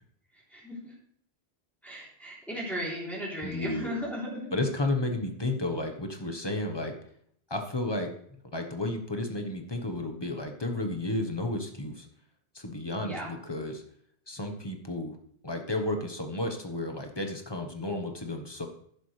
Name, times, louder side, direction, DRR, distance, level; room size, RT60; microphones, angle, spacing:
voice 1, 0.3-0.9 1.8-4.6 13.0-13.3, equal, ahead, -7 dB, 3.5 m, -36 dB
voice 2, 3.4-3.9 4.5-7.0 7.5-8.1 8.5-12.1 12.5-13.8 14.3-15.2 15.4-18.7, left 2 dB, 25° left, 4 dB, 1.3 m, -32 dB
11.5 x 10.0 x 3.4 m, 0.67 s
omnidirectional pair, 1.1 m